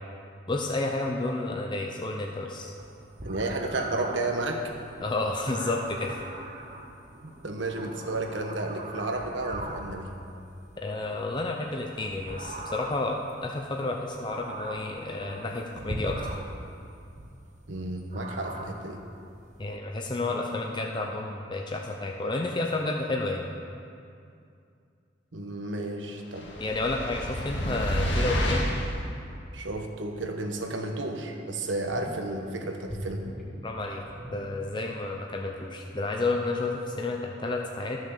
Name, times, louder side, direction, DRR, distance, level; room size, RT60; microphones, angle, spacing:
voice 1, 0.5-2.7 5.0-6.2 10.8-13.2 13.4-16.2 19.6-23.5 26.6-28.7 33.6-34.0 34.3-38.0, left 2 dB, 25° left, 1 dB, 0.6 m, -31 dB
sound 1, 2.8-19.7, right 1 dB, 40° right, 1.0 m, -41 dB
voice 2, 3.2-4.7 7.2-10.1 17.7-19.0 25.3-26.5 29.5-33.3, right 2 dB, 80° right, 3 dB, 1.2 m, -32 dB
sound 2, 26.3-29.0, equal, 70° left, 1.8 m, -28 dB
sound 3, 30.6-30.7 31.2-31.3 31.6-32.4 32.8-35.1 35.3-35.4, equal, ahead, 1.6 m, -40 dB
13.0 x 6.3 x 6.7 m, 2.5 s
head